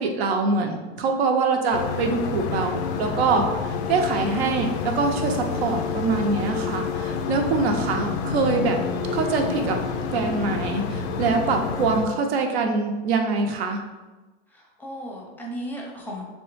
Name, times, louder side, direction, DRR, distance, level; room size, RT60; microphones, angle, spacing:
voice 1, 0.0-8.8 9.1-9.8 10.1-13.8, right 4 dB, 70° right, 3 dB, 0.6 m, -24 dB
sound 1, 1.7-12.1, left 6 dB, 85° left, 0.5 m, -28 dB
voice 2, 14.5-16.2, equal, 5° left, -1 dB, 0.6 m, -37 dB
3.4 x 3.1 x 3.1 m, 1.2 s
supercardioid pair, 140°, 32 cm